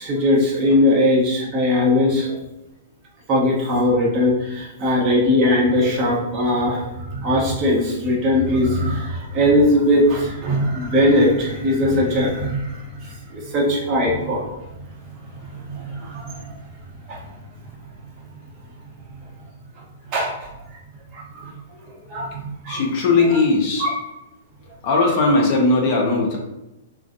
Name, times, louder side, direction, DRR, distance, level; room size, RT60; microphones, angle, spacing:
voice 1, 0.0-2.4 3.3-14.5 15.1-16.5 17.1-17.2 20.1-20.5 21.1-21.5 21.9-22.8 23.3-23.4 23.8-23.9, left 1 dB, 35° right, -4 dB, 0.9 m, -20 dB
voice 2, 22.7-23.9 24.8-26.4, left 3 dB, 45° left, 0 dB, 0.6 m, -18 dB
2.4 x 2.3 x 2.6 m, 0.94 s
figure-of-eight pair, 110°, 0 cm